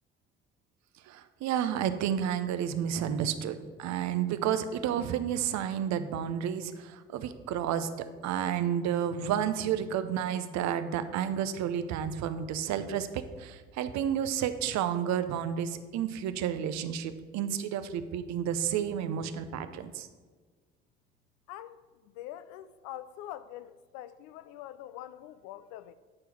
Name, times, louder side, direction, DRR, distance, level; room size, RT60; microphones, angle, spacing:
voice 1, 1.1-20.1, right 9 dB, 65° right, 0.6 m, -31 dB
voice 2, 21.5-26.0, left 12 dB, 75° left, 0.5 m, -44 dB
8.5 x 4.5 x 4.8 m
hypercardioid pair, 55°, 31 cm